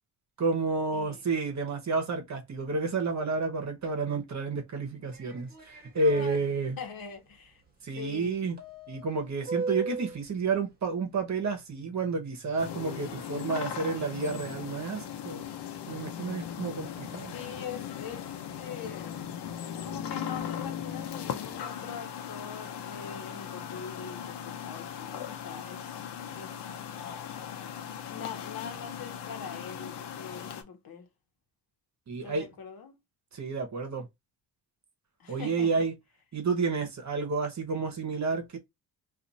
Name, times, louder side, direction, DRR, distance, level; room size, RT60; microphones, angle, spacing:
voice 1, 0.4-6.8 7.8-15.5 15.9-17.3 32.1-32.5 33.3-34.1 35.3-35.9 36.3-38.6, right 4 dB, 40° right, 1.1 m, -30 dB
voice 2, 0.9-1.2 6.2-6.3 6.8-7.6 7.9-8.4 17.3-19.2 19.8-26.1 26.3-26.6 28.1-31.1 32.2-33.0 35.2-35.8, left 6 dB, 55° left, 1.1 m, -43 dB
sound 1, 5.1-6.4 8.6-10.2, right 3 dB, 20° right, 1.4 m, -36 dB
sound 2, 12.6-30.6, left 9 dB, 70° left, 0.8 m, -38 dB
2.6 x 2.5 x 4.0 m
cardioid pair, 85°, 41 cm